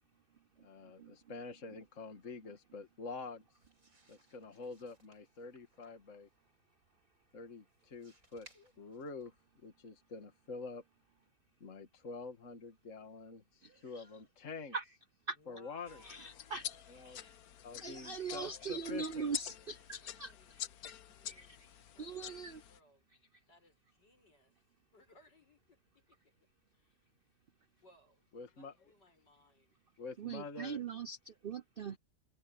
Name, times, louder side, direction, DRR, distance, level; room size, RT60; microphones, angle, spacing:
voice 1, 0.6-3.4 4.1-6.3 7.3-9.3 9.6-10.8 11.6-14.8 15.5-16.0 16.9-17.2 17.6-19.3 28.3-28.7 30.0-30.8, left 4 dB, 45° left, 2.1 m, -47 dB
sound 1, 3.5-9.7, right 2 dB, 50° right, 6.6 m, -67 dB
voice 2, 13.6-14.0 14.7-14.8 15.3-15.4 16.0-17.3 17.8-20.3 21.3-21.6 22.0-22.6 30.2-32.0, right 5 dB, 70° right, 0.5 m, -41 dB
voice 3, 15.3-16.8 19.2-23.1 23.5-24.6 24.9-26.3 26.7-27.1 27.8-29.8, left 1 dB, 80° left, 8.0 m, -66 dB
sound 2, 15.9-22.8, left 10 dB, 65° left, 1.2 m, -47 dB
omnidirectional pair, 1.8 m